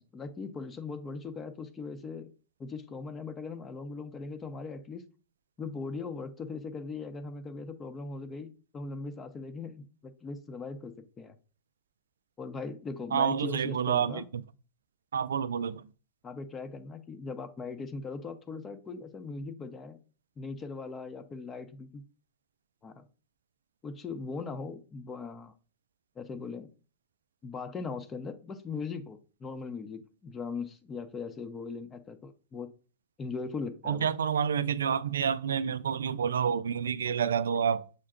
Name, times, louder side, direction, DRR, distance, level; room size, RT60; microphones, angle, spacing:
voice 1, 0.0-2.3 2.6-5.0 5.6-11.4 12.4-14.2 16.2-20.0 20.4-22.0 22.8-23.1 23.8-25.5 26.2-26.7 27.4-32.7 33.2-34.1, left 4 dB, 25° left, 0.7 m, -39 dB
voice 2, 13.1-14.4 15.1-15.8 33.9-37.8, right 7 dB, 90° right, 0.3 m, -28 dB
6.5 x 2.2 x 3.7 m
hypercardioid pair, 115°, 0 cm